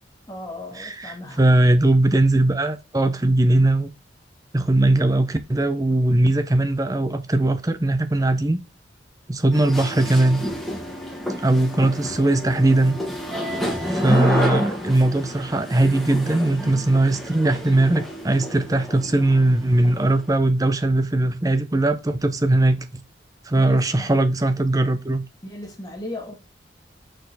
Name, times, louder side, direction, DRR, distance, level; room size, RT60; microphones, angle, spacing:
voice 1, 0.3-1.5 16.5-16.9 23.5-24.1 25.4-26.4, left 1 dB, 20° left, 1.9 m, -36 dB
voice 2, 0.8-3.9 4.5-8.6 9.3-10.4 11.4-12.9 13.9-23.0 23.5-25.2, right 2 dB, 20° right, 0.6 m, -20 dB
sound 1, 9.5-20.3, equal, ahead, 1.6 m, -29 dB
6.4 x 4.4 x 4.0 m
head